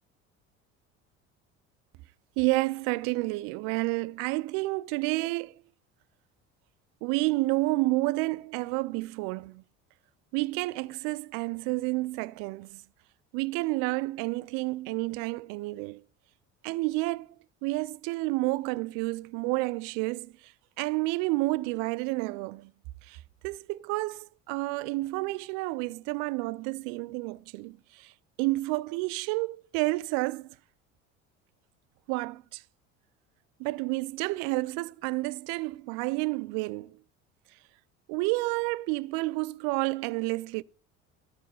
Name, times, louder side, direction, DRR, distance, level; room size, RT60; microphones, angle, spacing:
voice 1, 2.4-5.5 7.0-9.6 10.3-12.8 13.3-16.0 16.6-17.3 17.6-20.5 20.8-22.7 23.1-28.1 28.4-30.5 32.1-32.6 33.6-37.0 38.1-40.6, right 22 dB, 55° right, 0.4 m, -30 dB
12.0 x 5.1 x 5.3 m
hypercardioid pair, 65°, 40 cm